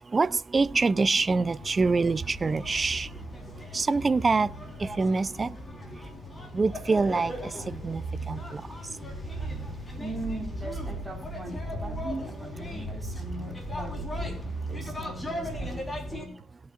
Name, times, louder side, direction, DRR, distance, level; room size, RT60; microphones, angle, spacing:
voice 1, 0.0-3.2 3.7-4.5 4.8-5.6 5.9-6.0 6.5-8.6, right 4 dB, 30° right, 0.5 m, -26 dB
sound 1, 0.8-16.3, equal, 15° left, 4.2 m, -37 dB
voice 2, 9.9-14.4 14.7-16.3, right 2 dB, 15° right, 4.9 m, -40 dB
21.0 x 8.5 x 2.5 m
cardioid pair, 90°, 0 cm